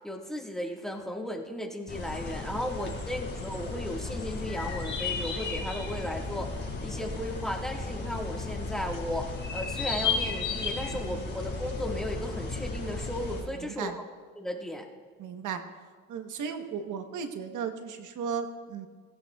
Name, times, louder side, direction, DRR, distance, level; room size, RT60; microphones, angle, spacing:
voice 1, 0.0-14.0 14.3-14.9, left 1 dB, ahead, 0 dB, 1.6 m, -35 dB
sound 1, 1.9-13.4, left 4 dB, 35° left, 4.8 m, -34 dB
voice 2, 13.5-14.0 15.2-15.6 16.1-18.9, right 6 dB, 80° right, 7 dB, 1.1 m, -35 dB
19.0 x 16.0 x 2.3 m, 1.5 s
cardioid pair, 90°, 30 cm